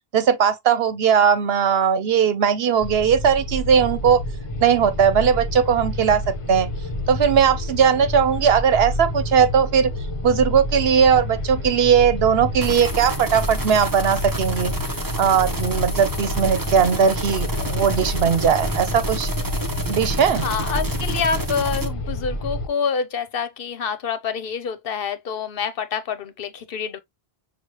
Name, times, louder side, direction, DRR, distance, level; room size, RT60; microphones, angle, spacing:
voice 1, 0.1-4.2 4.6-6.7 7.1-9.9 10.2-14.8 15.2-19.3 19.9-20.5, right 7 dB, 70° right, 1.0 m, -19 dB
sound 1, 2.8-22.7, left 1 dB, 35° left, 0.8 m, -29 dB
sound 2, 12.6-21.9, right 2 dB, 20° right, 0.8 m, -30 dB
voice 2, 20.3-27.0, left 6 dB, 65° left, 0.9 m, -27 dB
6.3 x 2.4 x 3.0 m
omnidirectional pair, 1.1 m